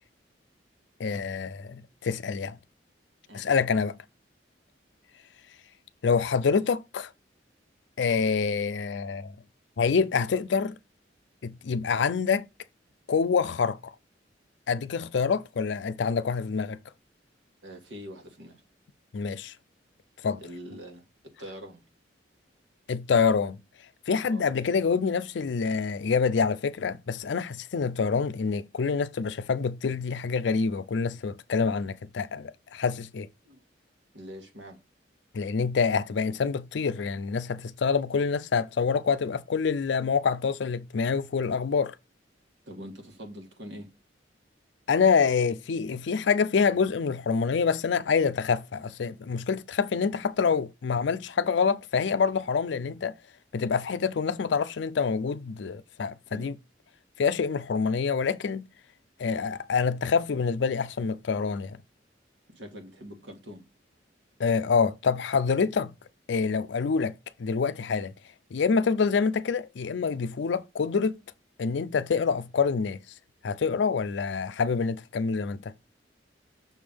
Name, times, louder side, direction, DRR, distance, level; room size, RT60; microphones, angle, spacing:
voice 1, 1.0-2.6 3.3-3.9 6.0-7.1 8.0-9.4 9.8-10.8 11.4-12.5 13.1-13.9 14.7-16.8 19.1-19.5 20.2-20.4 22.9-23.6 24.1-33.3 35.3-42.0 44.9-53.1 53.5-56.6 57.2-58.7 59.2-61.8 64.4-65.9 66.3-67.1 67.4-68.1 68.5-71.2 71.6-73.0 73.4-75.7, left 5 dB, 70° left, 0.4 m, -26 dB
voice 2, 17.6-18.6 20.4-21.1 21.4-21.8 24.3-24.5 33.4-33.6 34.1-34.8 42.7-43.9 56.3-56.5 62.5-63.6, equal, 75° right, 1.8 m, -43 dB
6.2 x 3.4 x 5.2 m
head